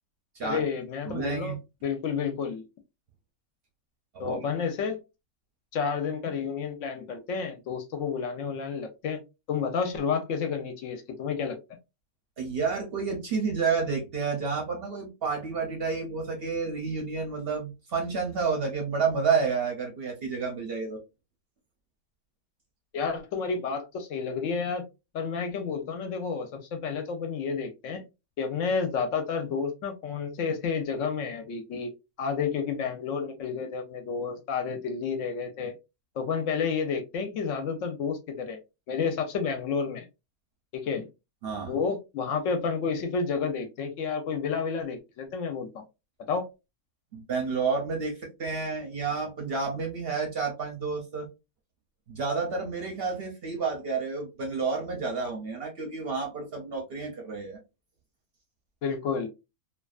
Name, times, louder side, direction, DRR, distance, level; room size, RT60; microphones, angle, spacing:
voice 1, 0.4-1.6 1.8-2.6 4.2-5.0 5.7-9.2 9.5-11.6 22.9-24.8 25.1-28.0 28.4-31.9 32.2-35.7 36.2-38.6 38.9-40.1 40.7-41.0 41.7-45.8 46.3-46.4 58.8-59.3, left 5 dB, 70° left, 6 dB, 0.8 m, -30 dB
voice 2, 1.1-1.6 4.1-4.4 12.4-21.0 41.4-41.7 47.1-51.3 52.1-57.6, right 5 dB, 55° right, 1 dB, 0.7 m, -30 dB
2.6 x 2.3 x 2.3 m, 0.26 s
omnidirectional pair, 1.5 m